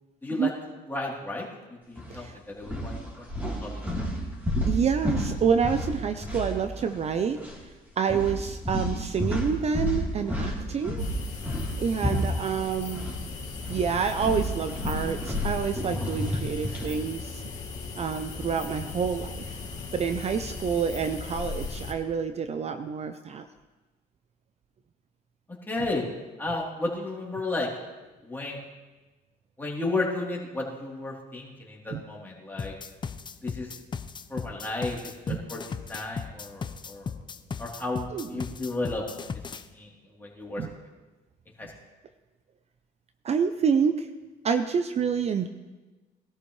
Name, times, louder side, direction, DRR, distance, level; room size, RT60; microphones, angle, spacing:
voice 1, 0.9-1.5 1.9-3.8 25.7-26.0 26.4-27.7 28.2-28.6 29.6-32.7 33.4-33.7 34.3-35.6 35.9-37.1 37.6-39.0 39.7-39.9 40.2-40.6 41.6-41.7, left 2 dB, 10° left, -4 dB, 3.4 m, -33 dB
sound 1, 2.0-2.2 2.6-7.1 7.3-7.6 8.1-13.2 13.5-17.0, equal, 10° right, 3.5 m, -31 dB
voice 2, 4.7-11.0 11.8-13.1 13.7-17.4 18.0-19.6 19.9-23.5 31.9-32.0 35.3-35.4 38.1-38.4 40.6-40.7 43.2-44.1 44.4-45.5, right 6 dB, 40° right, 9 dB, 0.6 m, -28 dB
sound 2, 11.0-21.9, left 4 dB, 45° left, 2.8 m, -37 dB
sound 3, 32.6-39.6, left 5 dB, 25° left, 0.6 m, -36 dB
21.5 x 13.0 x 3.3 m, 1.2 s
cardioid pair, 110°, 17 cm